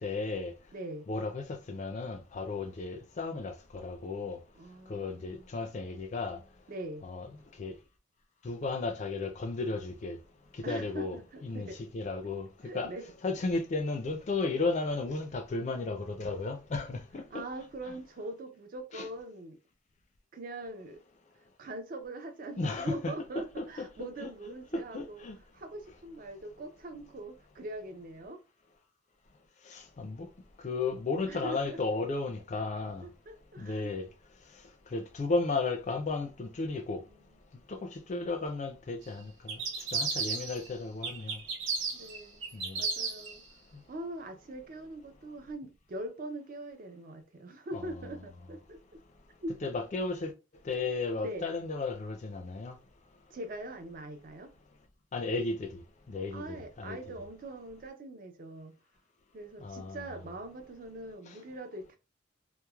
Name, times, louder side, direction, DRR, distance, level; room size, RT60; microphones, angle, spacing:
voice 1, 0.0-0.5 1.1-4.4 4.9-6.4 7.0-7.3 7.6-7.7 8.4-10.2 10.5-12.9 13.2-17.4 17.9-18.0 18.9-19.1 22.6-24.3 24.7-25.4 29.7-30.3 30.6-33.1 33.6-34.1 34.9-37.0 37.7-39.6 39.9-41.4 42.5-42.8 47.7-48.1 49.6-50.3 50.6-52.8 55.1-55.8 56.1-57.0 59.6-60.1, left 3 dB, 35° left, 0.3 m, -34 dB
voice 2, 0.7-1.1 4.6-5.5 6.7-7.1 10.6-11.8 12.6-13.1 17.3-19.6 20.3-21.0 21.6-25.2 25.5-28.4 31.3-31.8 33.0-33.9 41.9-42.4 42.8-43.4 43.9-49.0 49.4-49.6 51.2-51.5 53.3-54.5 56.3-58.8 59.3-62.0, right 1 dB, 45° right, 0.4 m, -42 dB
sound 1, 39.5-40.7 41.0-43.3, right 4 dB, 75° right, 0.7 m, -33 dB
3.0 x 2.0 x 2.2 m
head